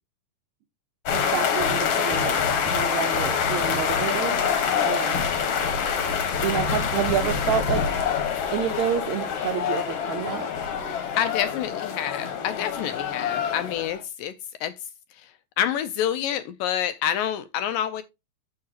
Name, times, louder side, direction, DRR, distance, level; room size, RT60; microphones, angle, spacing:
sound 1, 1.1-14.0, left 7 dB, 55° left, 1.8 m, -26 dB
voice 1, 1.1-2.4 2.6-4.4 4.9-5.2 6.4-7.9 8.5-10.5, right 8 dB, 75° right, 1.7 m, -28 dB
voice 2, 11.2-14.3 14.6-14.7 15.6-18.0, left 10 dB, 80° left, 2.1 m, -27 dB
9.4 x 7.4 x 2.9 m
omnidirectional pair, 4.4 m